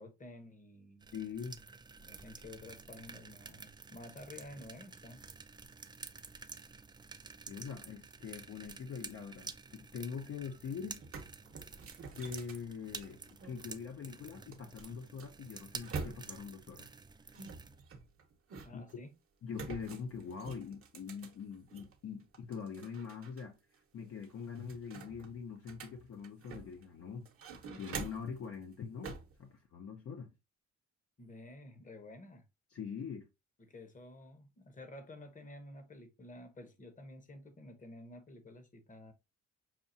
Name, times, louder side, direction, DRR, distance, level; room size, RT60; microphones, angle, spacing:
voice 1, 0.0-1.1 2.0-5.2 18.6-19.1 31.2-32.5 33.6-39.1, left 1 dB, 25° left, 0.9 m, -51 dB
sound 1, 1.0-17.8, right 4 dB, 15° right, 0.3 m, -51 dB
voice 2, 1.1-1.6 7.5-11.0 12.1-16.9 18.7-18.8 19.4-23.6 23.9-27.3 27.8-30.3 32.7-33.3, left 6 dB, 50° left, 0.6 m, -43 dB
sound 2, 10.5-10.6 10.9-13.6 14.5-16.5 17.3-18.9 19.5-21.9 22.3-23.4 23.7-23.8 24.2-26.8 27.2-28.4 29.0-29.4, right 4 dB, 45° right, 0.9 m, -46 dB
5.7 x 2.3 x 2.6 m
cardioid pair, 90°, 30 cm